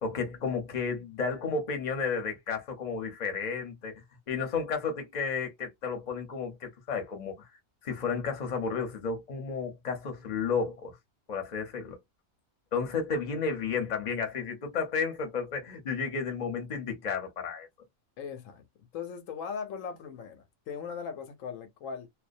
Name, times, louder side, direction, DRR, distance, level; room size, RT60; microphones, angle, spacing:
voice 1, 0.0-7.5 7.8-11.0 11.3-12.0 12.7-17.7, left 5 dB, 40° left, 0.8 m, -32 dB
voice 2, 18.2-22.1, left 6 dB, 80° left, 1.0 m, -39 dB
2.3 x 2.1 x 2.5 m
omnidirectional pair, 1.4 m